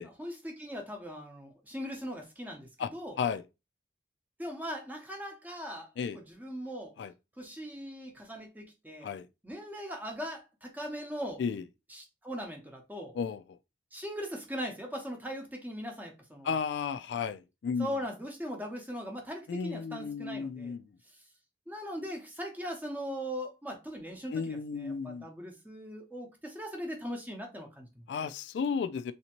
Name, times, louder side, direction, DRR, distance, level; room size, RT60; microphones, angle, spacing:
voice 1, 0.0-3.2 4.4-6.9 7.4-9.1 9.4-11.4 11.9-13.1 13.9-16.6 17.8-20.8 21.7-28.0, equal, 10° right, 0.7 m, -40 dB
voice 2, 16.4-17.9 19.5-20.8 24.3-25.3 28.1-29.1, left 6 dB, 80° left, 0.3 m, -33 dB
3.3 x 2.8 x 2.9 m
head